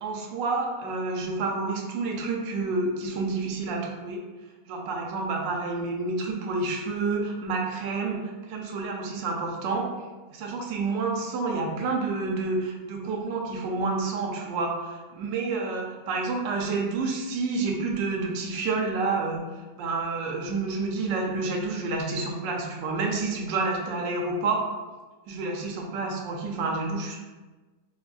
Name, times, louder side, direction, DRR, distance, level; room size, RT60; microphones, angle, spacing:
voice 1, 0.0-4.2 4.7-9.9 10.3-24.7 25.3-27.2, right 3 dB, 80° right, 1 dB, 1.2 m, -29 dB
4.1 x 2.4 x 2.2 m, 1.3 s
omnidirectional pair, 2.0 m